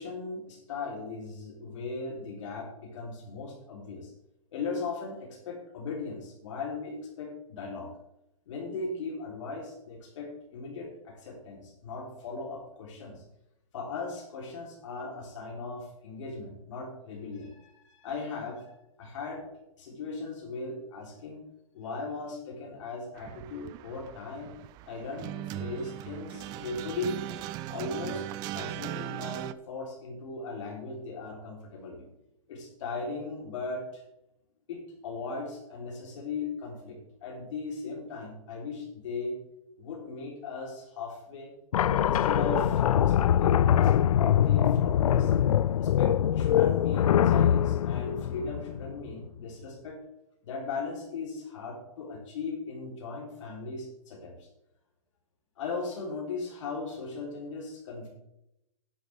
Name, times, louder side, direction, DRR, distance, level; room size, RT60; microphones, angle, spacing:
voice 1, 0.0-4.1 4.5-7.9 8.5-13.2 13.7-18.7 19.0-21.4 21.7-24.5 24.9-32.0 32.5-34.0 34.7-39.4 39.8-41.5 42.0-45.3 45.8-50.0 50.4-54.5 55.6-58.1, left 3 dB, 60° left, -2 dB, 3.6 m, -38 dB
sound 1, 23.2-29.5, right 15 dB, 20° right, 0.4 m, -39 dB
sound 2, 41.7-49.1, left 10 dB, 80° left, 0.4 m, -23 dB
11.0 x 10.5 x 3.5 m, 0.84 s
hypercardioid pair, 140°, 18 cm